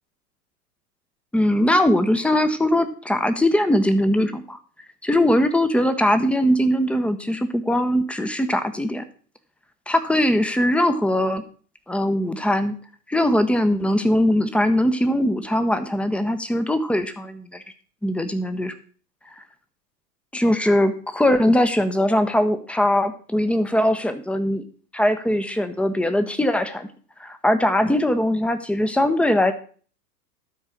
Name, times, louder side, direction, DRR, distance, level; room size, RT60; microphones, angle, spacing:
voice 1, 1.3-4.6 5.0-9.0 9.9-11.4 11.9-12.7 13.1-17.6 18.0-18.7 20.3-24.6 24.9-26.9 27.2-29.5, left 1 dB, ahead, 9 dB, 0.7 m, -21 dB
12.5 x 4.5 x 6.4 m, 0.42 s
figure-of-eight pair, 95°, 48 cm